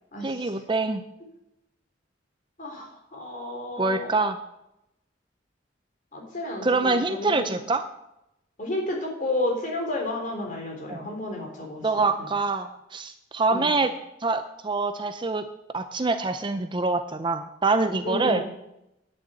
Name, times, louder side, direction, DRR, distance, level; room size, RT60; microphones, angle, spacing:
voice 1, 0.2-1.0 3.8-4.4 6.6-7.8 10.9-11.1 11.8-13.9 14.2-15.5 15.7-18.4, right 3 dB, 25° right, 9 dB, 0.6 m, -25 dB
voice 2, 2.6-4.2 6.1-7.6 8.6-11.8 13.5-13.7 18.0-18.4, left 1 dB, 45° left, 1 dB, 3.4 m, -31 dB
10.5 x 6.5 x 8.7 m, 0.86 s
head